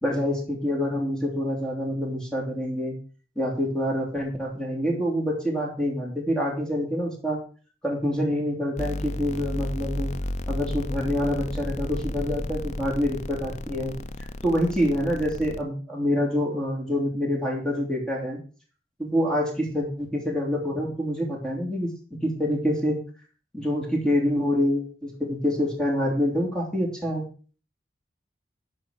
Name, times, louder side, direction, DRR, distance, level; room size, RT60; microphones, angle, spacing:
voice 1, 0.0-3.0 3.3-7.4 7.8-10.1 10.5-14.0 14.4-18.4 19.0-23.0 23.5-27.3, equal, 5° left, -1 dB, 3.0 m, -26 dB
sound 1, 8.8-15.6, left 1 dB, 40° left, 0.6 m, -33 dB
11.5 x 5.1 x 6.2 m, 0.39 s
head